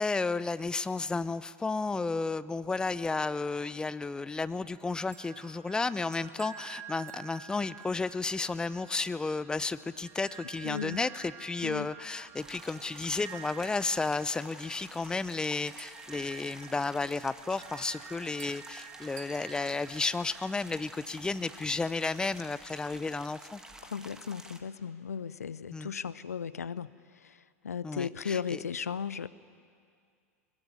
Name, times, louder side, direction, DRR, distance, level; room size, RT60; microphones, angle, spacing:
voice 1, 0.0-23.6 25.7-25.9 27.8-28.6, left 3 dB, 10° left, 16 dB, 0.6 m, -33 dB
sound 1, 4.7-21.6, right 8 dB, 35° right, 2.3 m, -50 dB
voice 2, 10.6-11.0 11.6-11.9 23.8-26.9 27.2-27.3 27.6-29.3, left 7 dB, 75° left, 18 dB, 0.6 m, -36 dB
sound 2, 12.3-24.6, right 1 dB, 5° right, 1.8 m, -50 dB
22.0 x 21.0 x 9.7 m, 2.2 s
figure-of-eight pair, 85°, 8 cm